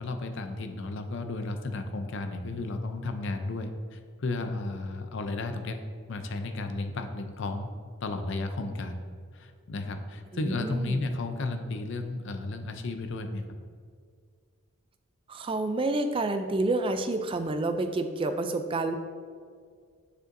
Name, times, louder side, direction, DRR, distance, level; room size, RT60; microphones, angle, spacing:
voice 1, 0.0-5.8 6.1-7.7 8.0-9.0 9.3-13.4, left 2 dB, 55° left, 7 dB, 0.5 m, -33 dB
voice 2, 10.3-11.1 15.3-19.0, right 2 dB, 25° right, 8 dB, 0.3 m, -29 dB
7.7 x 6.5 x 2.6 m, 2.1 s
head